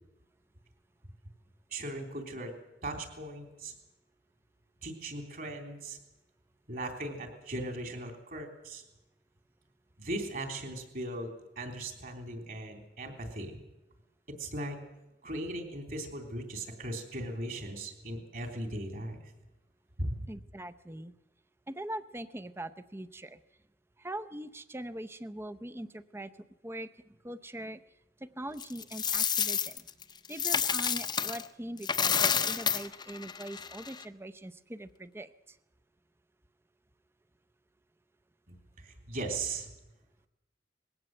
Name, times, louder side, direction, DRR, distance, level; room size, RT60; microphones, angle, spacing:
voice 1, 1.7-2.5 2.8-3.7 4.8-6.0 6.7-8.8 10.0-11.3 11.6-13.6 14.4-14.8 15.2-19.3 20.0-20.3 38.5-38.6 38.8-39.7, right 1 dB, 50° right, 5 dB, 3.5 m, -38 dB
voice 2, 20.3-21.1 21.7-23.4 24.0-26.3 26.6-26.9 27.2-27.8 28.4-29.8 30.3-35.6, right 1 dB, 15° right, 11 dB, 0.7 m, -42 dB
Coin (dropping), 28.6-31.4 31.8-34.0, left 7 dB, 25° left, 0.8 m, -30 dB
20.5 x 17.0 x 7.8 m, 0.98 s
head